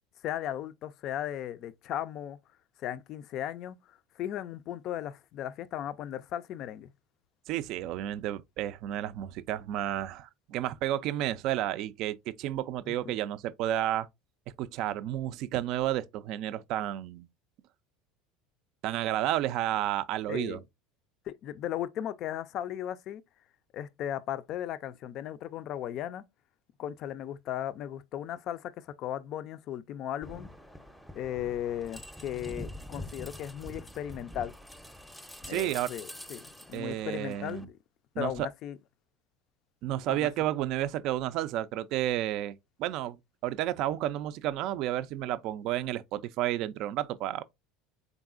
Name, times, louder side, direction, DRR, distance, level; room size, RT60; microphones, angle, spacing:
voice 1, 0.2-2.4 2.8-6.9 12.9-13.1 20.3-20.6 21.3-23.2 23.7-26.2 26.8-30.5 31.1-34.5 35.4-37.7 38.2-38.8 40.1-40.3, left 11 dB, 55° left, 0.3 m, -36 dB
voice 2, 7.5-14.1 14.6-17.3 18.8-20.6 35.5-35.9 36.7-37.7 38.2-38.5 39.8-43.2 43.4-47.4, right 13 dB, 60° right, 0.3 m, -31 dB
sound 1, 30.2-37.6, left 1 dB, ahead, 0.6 m, -45 dB
3.9 x 3.5 x 2.4 m
hypercardioid pair, 90°, 0 cm